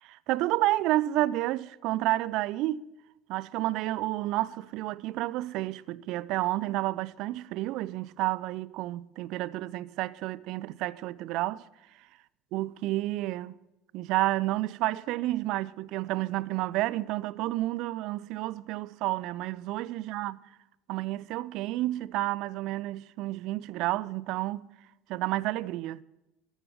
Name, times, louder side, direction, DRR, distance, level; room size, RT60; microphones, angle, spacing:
voice 1, 0.0-2.8 3.3-11.6 12.5-13.6 13.9-20.4 20.9-24.7 25.1-26.0, right 16 dB, 55° right, 0.5 m, -30 dB
13.5 x 12.0 x 6.7 m
figure-of-eight pair, 65°, 0 cm